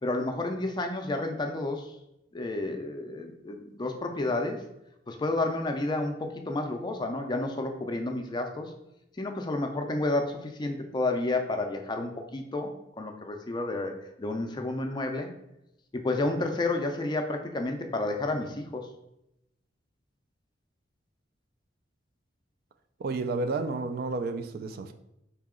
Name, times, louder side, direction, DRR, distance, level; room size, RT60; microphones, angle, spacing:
voice 1, 0.0-1.9 2.3-4.6 5.1-8.7 9.2-12.7 13.0-13.9 14.2-15.3 15.9-18.9, left 2 dB, 25° left, 4 dB, 0.4 m, -30 dB
voice 2, 23.0-24.9, right 3 dB, 55° right, 8 dB, 0.3 m, -31 dB
4.0 x 2.8 x 3.6 m, 0.83 s
head